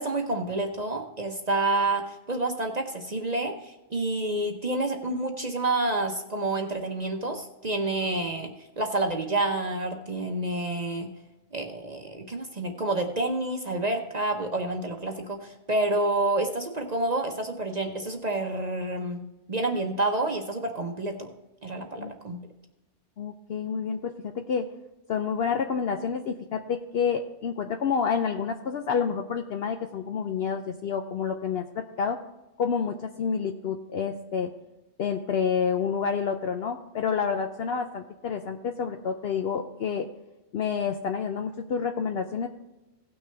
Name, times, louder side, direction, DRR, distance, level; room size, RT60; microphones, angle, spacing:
voice 1, 0.0-8.5 8.8-11.1 11.5-19.2 19.5-21.3 21.6-22.5, right 2 dB, 40° right, 3 dB, 0.9 m, -28 dB
voice 2, 23.2-24.7 25.1-32.2 32.6-34.5 35.0-40.1 40.5-42.5, left 6 dB, 60° left, 6 dB, 0.8 m, -29 dB
17.0 x 6.4 x 3.4 m, 1.0 s
omnidirectional pair, 1.3 m